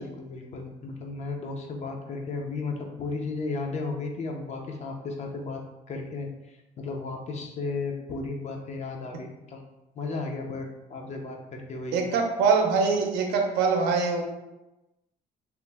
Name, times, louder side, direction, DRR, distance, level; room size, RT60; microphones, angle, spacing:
voice 1, 0.0-5.6 5.9-9.6 10.0-12.0, left 3 dB, 40° left, 2 dB, 0.5 m, -34 dB
voice 2, 11.9-14.2, right 5 dB, 90° right, 2 dB, 0.5 m, -23 dB
2.9 x 2.0 x 3.3 m, 1.0 s
cardioid pair, 110°, 17 cm